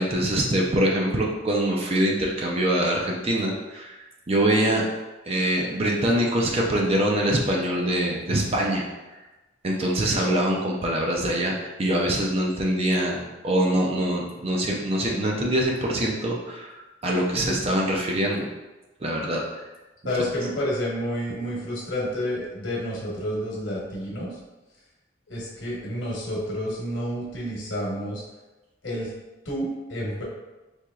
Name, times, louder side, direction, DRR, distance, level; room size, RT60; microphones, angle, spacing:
voice 1, 0.0-4.0 4.3-4.8 5.3-8.9 9.6-11.5 11.8-16.7 17.0-18.4 19.0-19.6, right 1 dB, 30° right, -1 dB, 0.5 m, -24 dB
voice 2, 20.0-24.3 25.3-28.2 28.8-29.1 29.4-30.2, equal, 65° left, -4 dB, 1.1 m, -29 dB
4.3 x 2.9 x 2.3 m, 1.1 s
head